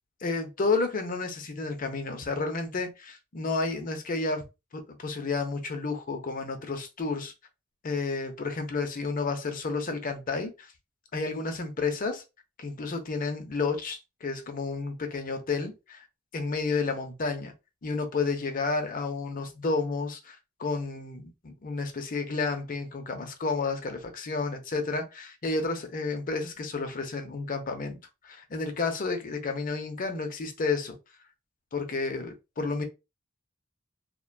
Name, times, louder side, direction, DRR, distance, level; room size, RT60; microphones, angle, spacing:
voice 1, 0.2-4.4 4.7-7.3 7.8-10.7 11.1-12.2 12.6-16.1 16.3-17.5 17.8-28.0 28.2-31.0 31.7-32.8, left 3 dB, 40° left, 0.6 m, -31 dB
2.5 x 2.2 x 2.5 m
head